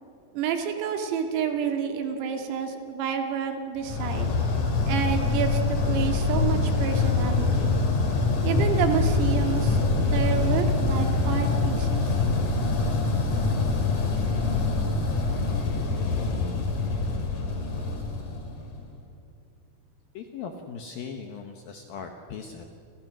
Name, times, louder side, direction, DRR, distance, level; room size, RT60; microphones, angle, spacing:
voice 1, 0.3-4.3 4.9-7.8 8.4-12.1, right 7 dB, 90° right, 5 dB, 4.7 m, -29 dB
sound 1, 3.8-18.9, left 3 dB, 45° left, 3.7 m, -25 dB
voice 2, 20.1-22.7, left 6 dB, 70° left, 4 dB, 2.2 m, -39 dB
28.5 x 28.0 x 6.3 m, 2.5 s
omnidirectional pair, 5.9 m